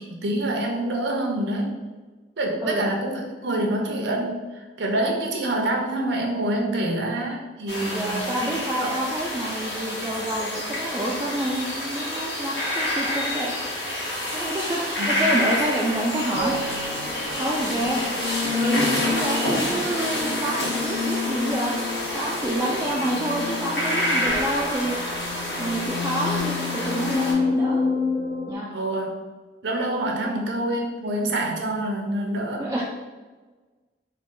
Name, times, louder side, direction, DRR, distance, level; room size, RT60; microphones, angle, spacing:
voice 1, 0.1-1.8 2.4-8.4 8.8-8.9 15.0-15.2 17.5-17.7 19.4-19.7 28.7-29.1 29.6-32.7, right 1 dB, 85° right, 1 dB, 0.7 m, -26 dB
sound 1, 7.7-27.3, left 1 dB, 85° left, 1.3 m, -28 dB
voice 2, 7.8-13.5 14.3-16.6 17.4-18.0 18.5-21.7 22.1-25.0 25.6-27.8 28.5-28.7 30.2-30.4 32.6-32.8, right 1 dB, 15° right, -5 dB, 0.3 m, -28 dB
sound 2, 16.3-28.5, left 4 dB, 65° left, 0.5 m, -29 dB
3.7 x 2.2 x 3.7 m, 1.3 s
head